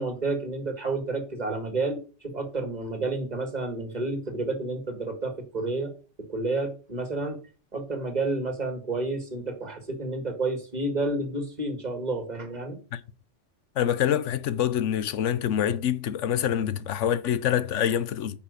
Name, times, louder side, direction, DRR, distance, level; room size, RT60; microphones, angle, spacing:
voice 1, 0.0-5.9 6.2-7.4 7.7-12.8, right 2 dB, 35° right, 2.1 m, -30 dB
voice 2, 13.8-18.4, left 10 dB, 70° left, 1.1 m, -26 dB
8.9 x 5.7 x 6.6 m
omnidirectional pair, 1.3 m